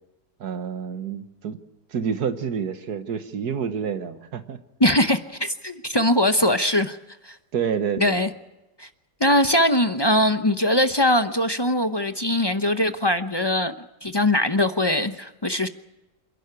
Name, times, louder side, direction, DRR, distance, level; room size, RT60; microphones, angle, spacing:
voice 1, 0.4-1.6 1.9-4.6 7.5-8.2, right 7 dB, 70° right, 1.8 m, -28 dB
voice 2, 4.8-7.0 7.2-7.4 8.0-8.3 8.8-8.9 9.2-13.7 14.0-15.7, left 1 dB, 25° left, 0.5 m, -21 dB
27.5 x 11.5 x 9.7 m
omnidirectional pair, 1.8 m